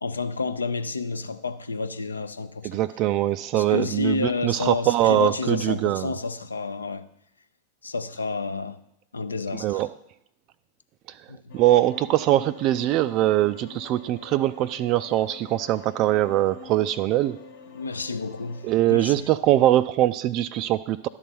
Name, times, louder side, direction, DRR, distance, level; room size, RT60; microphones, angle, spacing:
voice 1, 0.0-2.8 3.5-7.1 7.8-8.8 9.1-9.8 11.3-11.5 17.7-19.3, left 4 dB, 75° left, 0.5 m, -30 dB
voice 2, 2.6-6.1 9.6-9.9 11.5-17.4 18.6-21.1, right 14 dB, 40° right, 0.3 m, -22 dB
sound 1, 11.5-18.8, left 7 dB, 60° left, 1.1 m, -46 dB
11.5 x 4.0 x 7.5 m
figure-of-eight pair, 90°, 0 cm